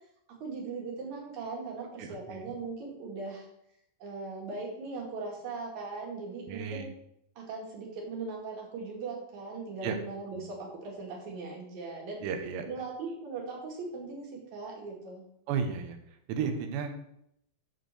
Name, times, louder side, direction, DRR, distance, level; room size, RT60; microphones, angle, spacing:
voice 1, 0.4-3.5 4.0-6.9 7.4-12.2 12.6-15.2 16.9-17.0, right 4 dB, 50° right, -1 dB, 3.0 m, -39 dB
voice 2, 2.0-2.5 6.5-6.9 9.8-10.0 10.4-10.5 12.2-12.6 15.5-16.0 16.3-16.9, right 6 dB, 75° right, 6 dB, 3.2 m, -33 dB
11.5 x 4.6 x 6.7 m, 0.77 s
omnidirectional pair, 5.2 m